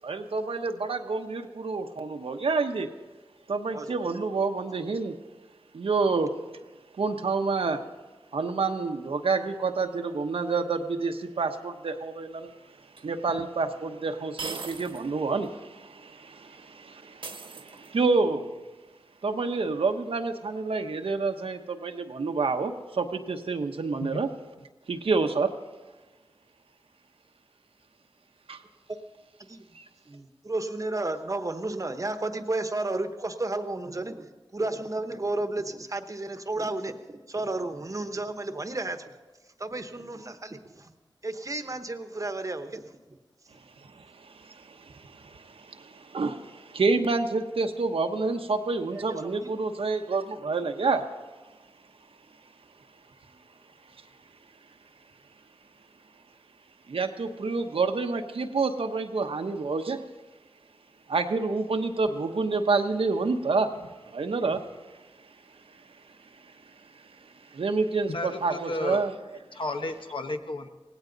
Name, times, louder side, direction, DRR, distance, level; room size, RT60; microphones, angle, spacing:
voice 1, 0.0-2.9 3.5-5.1 5.7-6.3 7.0-7.8 8.3-12.5 13.0-18.5 19.2-24.3 24.9-25.5 28.5-28.6 29.7-29.8 43.9-51.0 56.9-60.0 61.1-64.6 67.5-69.1, right 4 dB, 85° right, 5 dB, 1.0 m, -28 dB
sound 1, 13.0-13.1 14.4-15.1 15.4-15.5 17.2-18.1, right 4 dB, 65° right, 1.2 m, -38 dB
voice 2, 30.1-39.0 39.6-40.9 41.2-43.2 48.9-49.5, right 2 dB, 35° right, 8 dB, 1.0 m, -32 dB
voice 3, 68.1-69.1 69.5-70.7, left 2 dB, 65° left, 6 dB, 1.0 m, -33 dB
17.5 x 16.5 x 4.0 m, 1.2 s
wide cardioid pair, 85°, 9 cm